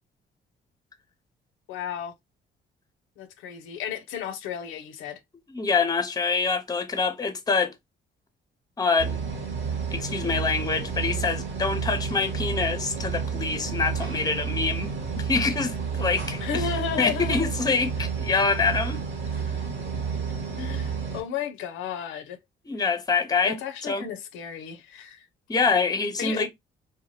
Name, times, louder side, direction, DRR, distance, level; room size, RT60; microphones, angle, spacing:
voice 1, 1.7-2.1 3.2-5.2 16.4-17.5 20.3-22.4 23.4-25.3 26.2-26.5, left 8 dB, 90° left, 0.5 m, -33 dB
voice 2, 5.5-7.7 8.8-9.2 9.9-16.6 17.0-19.0 22.7-23.6 23.9-24.1 25.5-26.5, left 4 dB, 20° left, 0.6 m, -25 dB
sound 1, 9.0-21.2, right 6 dB, 75° right, 1.2 m, -30 dB
2.7 x 2.2 x 2.9 m
cardioid pair, 90°, 20 cm